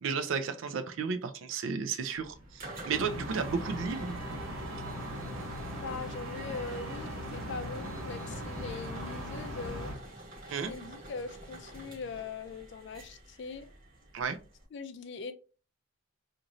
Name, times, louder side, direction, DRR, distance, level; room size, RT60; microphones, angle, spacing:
voice 1, 0.0-4.2 10.5-10.7 14.1-14.4, right 5 dB, 70° right, 0.4 m, -33 dB
sound 1, 2.1-14.6, right 1 dB, 45° right, 1.0 m, -48 dB
sound 2, 2.9-10.0, equal, 90° right, 0.9 m, -39 dB
voice 2, 5.8-9.9 10.5-13.7 14.7-15.3, left 4 dB, 55° left, 0.3 m, -41 dB
3.0 x 2.5 x 2.5 m
head